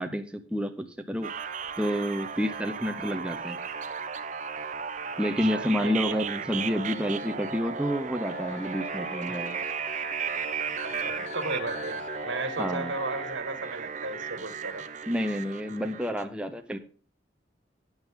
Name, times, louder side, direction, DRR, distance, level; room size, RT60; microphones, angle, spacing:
voice 1, 0.0-1.3 1.8-3.6 5.2-9.6 12.6-12.9 15.1-16.8, equal, 5° right, 5 dB, 0.7 m, -29 dB
sound 1, 1.2-16.2, right 6 dB, 40° right, 0.7 m, -35 dB
voice 2, 5.5-6.2 9.3-9.4 10.8-14.9, right 2 dB, 75° right, 10 dB, 1.7 m, -35 dB
sound 2, 8.3-13.3, left 5 dB, 35° left, 0.9 m, -42 dB
12.0 x 9.0 x 3.6 m, 0.40 s
head